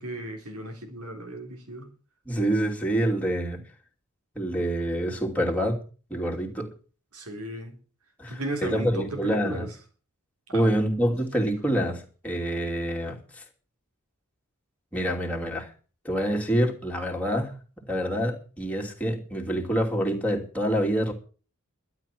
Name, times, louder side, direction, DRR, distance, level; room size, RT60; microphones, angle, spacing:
voice 1, 0.0-1.9 7.1-7.8 8.3-9.7 10.5-10.8, right 1 dB, 85° right, 3.5 m, -35 dB
voice 2, 2.2-3.6 4.3-5.8 6.1-6.7 8.2-9.7 10.5-13.4 14.9-15.7 16.0-21.1, equal, 5° left, 2.8 m, -27 dB
12.5 x 10.5 x 6.0 m
head